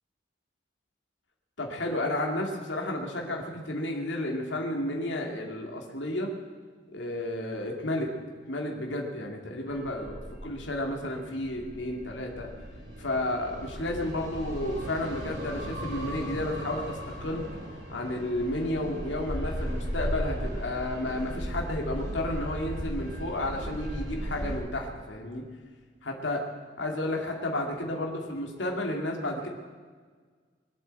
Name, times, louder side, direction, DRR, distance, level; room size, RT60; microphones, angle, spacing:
voice 1, 1.6-6.3 6.9-8.1 8.5-12.5 13.0-17.4 17.9-25.4 26.0-26.5 26.8-29.5, left 1 dB, 70° left, 1 dB, 2.2 m, -32 dB
sound 1, 9.7-24.5, equal, 60° right, 6.5 m, -36 dB
21.5 x 8.3 x 8.0 m, 1.5 s
head